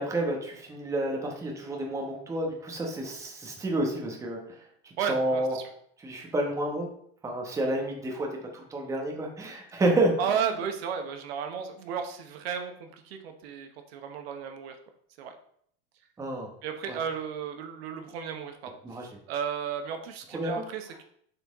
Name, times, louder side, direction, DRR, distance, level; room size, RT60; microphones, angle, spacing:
voice 1, 0.0-4.4 4.8-5.5 6.0-6.9 7.2-10.2 16.2-16.5 16.9-17.0 18.8-19.1 20.3-20.5, right 1 dB, 10° right, 0 dB, 1.0 m, -29 dB
voice 2, 5.0-5.7 10.2-14.8 15.2-15.4 16.6-21.0, right 7 dB, 70° right, 6 dB, 1.0 m, -34 dB
6.9 x 4.3 x 3.5 m, 0.66 s
supercardioid pair, 155°, 31 cm